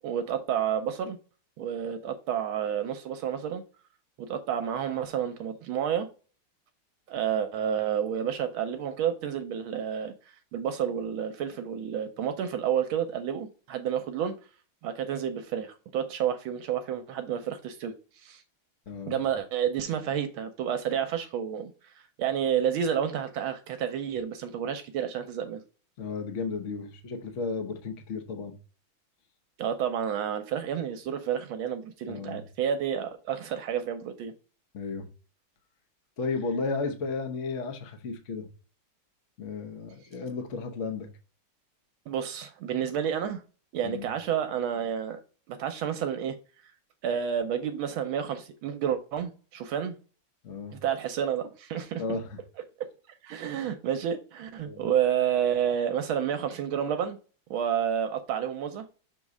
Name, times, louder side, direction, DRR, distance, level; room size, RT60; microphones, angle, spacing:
voice 1, 0.0-1.2 1.6-3.6 4.2-6.1 7.1-10.1 10.5-14.3 14.8-18.4 19.1-25.6 29.6-34.3 42.1-43.4 43.7-45.2 45.5-46.3 47.0-50.0 50.7-52.0 53.2-57.2 57.5-58.8, right 9 dB, 80° right, 1.4 m, -30 dB
voice 2, 18.9-19.2 26.0-28.6 32.1-32.4 34.7-35.1 36.2-38.5 39.4-41.1 43.8-44.1 50.4-50.8 52.0-52.4 54.7-54.9, left 4 dB, 45° left, 1.0 m, -34 dB
6.7 x 3.1 x 4.7 m
omnidirectional pair, 2.3 m